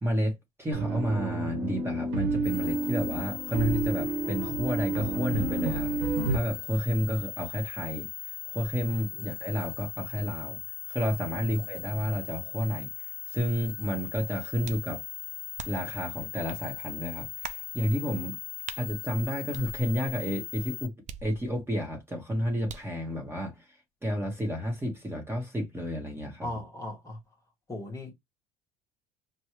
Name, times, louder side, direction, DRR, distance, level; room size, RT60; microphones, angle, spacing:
voice 1, 0.0-8.1 8.5-10.6 10.9-15.0 15.6-18.4 18.8-20.9 21.2-23.7 24.0-26.5, equal, 10° right, 1.1 m, -31 dB
sound 1, 0.7-6.4, right 3 dB, 90° right, 1.3 m, -30 dB
sound 2, 2.4-20.9, left 12 dB, 50° left, 0.5 m, -39 dB
sound 3, 14.6-14.9 15.6-15.9 16.5-16.6 17.4-17.7 18.7-18.8 19.5-20.2 21.1-21.7 22.7-23.0, right 6 dB, 35° right, 0.5 m, -42 dB
voice 2, 26.4-27.2 27.7-28.1, left 1 dB, 15° left, 1.1 m, -37 dB
5.2 x 2.3 x 3.1 m
supercardioid pair, 115°, 20 cm